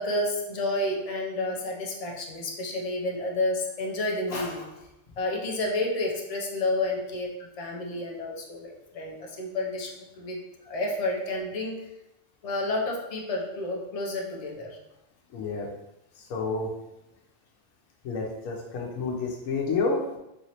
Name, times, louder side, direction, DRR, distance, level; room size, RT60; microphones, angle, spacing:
voice 1, 0.0-4.8 5.1-11.8 12.4-14.8 18.7-18.8, left 2 dB, 55° left, 0 dB, 0.4 m, -30 dB
voice 2, 15.3-15.7 16.3-16.7 18.0-20.2, left 4 dB, 80° left, -1 dB, 1.0 m, -29 dB
3.2 x 2.9 x 2.8 m, 0.90 s
omnidirectional pair, 1.3 m